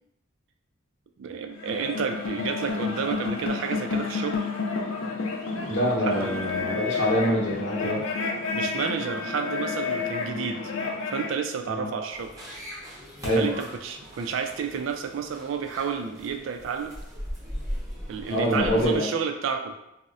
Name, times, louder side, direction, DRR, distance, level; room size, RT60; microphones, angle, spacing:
voice 1, 1.2-4.5 6.0-6.4 8.5-10.7 11.1-12.4 13.3-17.0 18.1-19.8, right 6 dB, 70° right, 6 dB, 0.3 m, -31 dB
sound 1, 1.5-11.3, left 4 dB, 85° left, 0.5 m, -30 dB
voice 2, 5.7-8.0 11.6-11.8 13.2-13.5 18.3-19.1, equal, 60° left, -4 dB, 0.9 m, -25 dB
sound 2, 12.1-19.0, equal, 15° right, 0.7 m, -39 dB
4.0 x 2.0 x 2.4 m, 0.87 s
head